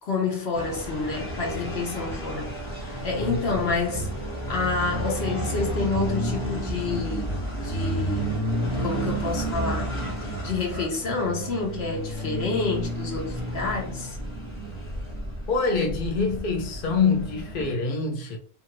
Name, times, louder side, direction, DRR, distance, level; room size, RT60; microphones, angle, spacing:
voice 1, 0.0-2.5 2.8-4.1 4.5-7.3 7.6-8.4 8.8-9.9 10.2-14.2, left 4 dB, 80° left, 1.2 m, -28 dB
sound 1, 0.5-17.8, right 1 dB, 15° left, 1.0 m, -31 dB
voice 2, 15.5-18.4, left 4 dB, 60° left, 0.7 m, -25 dB
2.7 x 2.5 x 2.9 m
omnidirectional pair, 1.0 m